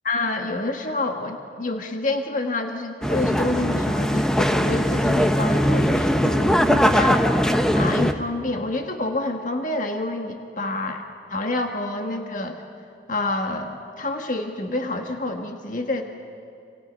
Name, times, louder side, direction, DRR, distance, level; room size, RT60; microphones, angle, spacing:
voice 1, 0.0-7.2 7.7-11.0 11.3-12.6 13.1-16.0, left 2 dB, 45° left, 3 dB, 1.7 m, -28 dB
sound 1, 3.0-8.1, equal, 5° left, 0.9 m, -20 dB
30.0 x 27.5 x 5.4 m, 2.6 s
head